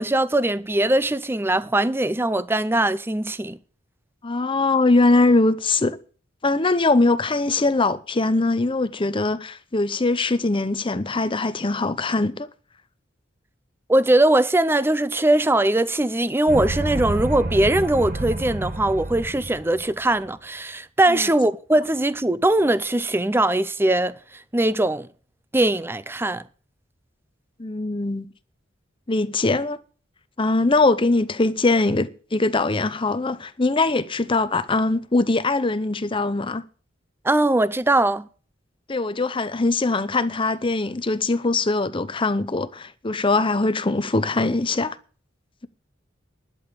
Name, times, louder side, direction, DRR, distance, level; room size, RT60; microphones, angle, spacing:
voice 1, 0.0-3.6 13.9-24.2 24.5-25.1 25.5-26.4 37.2-38.3, right 1 dB, 10° right, 0.5 m, -21 dB
voice 2, 4.2-6.0 6.4-12.5 21.1-21.3 27.6-28.3 29.1-29.8 30.4-36.6 38.9-45.0, left 2 dB, 25° left, 0.8 m, -22 dB
sound 1, 16.5-20.0, right 1 dB, 50° right, 1.4 m, -29 dB
11.5 x 7.0 x 8.9 m
head